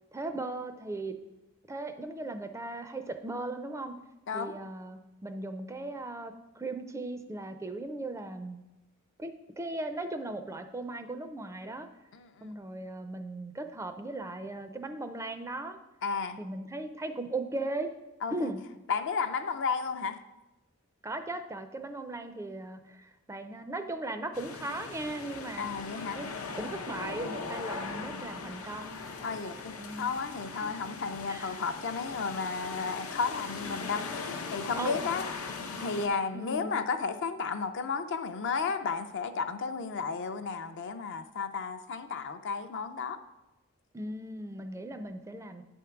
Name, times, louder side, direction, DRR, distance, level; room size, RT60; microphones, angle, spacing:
voice 1, 0.1-1.2 1.7-4.0 4.3-8.6 9.2-11.9 12.4-15.8 16.4-17.9 18.3-18.6 21.0-25.7 26.1-26.3 26.6-29.1 29.8-30.1 30.5-30.8 31.3-31.6 34.8-35.0 36.3-36.7 43.9-45.6, right 2 dB, 15° right, 8 dB, 0.4 m, -38 dB
voice 2, 12.1-12.6 16.0-16.4 18.2-18.5 18.9-20.2 25.6-26.2 29.2-34.1 34.5-35.2 35.8-43.2, left 5 dB, 55° left, 9 dB, 0.5 m, -33 dB
sound 1, 24.3-36.1, left 4 dB, 85° left, 0.8 m, -39 dB
9.2 x 3.6 x 5.8 m, 0.99 s
head